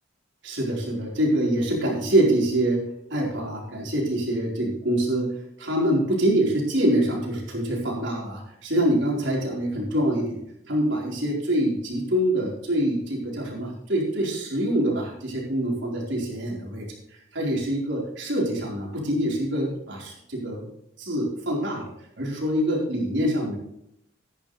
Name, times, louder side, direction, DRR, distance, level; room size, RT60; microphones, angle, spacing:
voice 1, 0.4-2.8 3.1-5.3 5.6-10.4 10.7-16.9 17.3-20.7 21.0-21.9 22.2-23.6, right 1 dB, 65° right, -3 dB, 4.5 m, -25 dB
14.5 x 10.5 x 3.3 m, 0.77 s
head